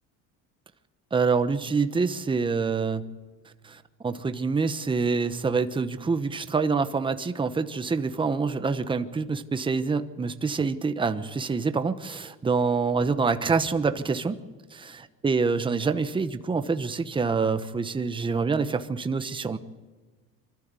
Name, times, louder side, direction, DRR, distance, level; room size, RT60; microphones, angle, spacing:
voice 1, 1.1-3.0 3.6-14.4 15.2-19.6, right 4 dB, 15° right, 10 dB, 1.0 m, -26 dB
24.5 x 13.5 x 8.3 m, 1.4 s
cardioid pair, 125°, 32 cm